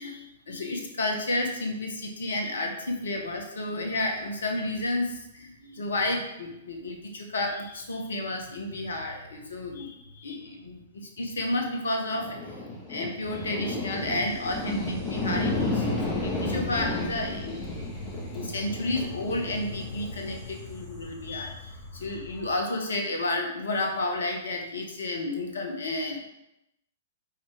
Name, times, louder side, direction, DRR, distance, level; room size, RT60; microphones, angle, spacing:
voice 1, 0.0-12.6 12.9-17.6 18.3-26.2, left 2 dB, 70° left, 3 dB, 1.3 m, -31 dB
sound 1, 12.1-22.5, left 2 dB, 15° left, 2.0 m, -33 dB
5.7 x 4.4 x 4.5 m, 0.86 s
figure-of-eight pair, 110°, 0 cm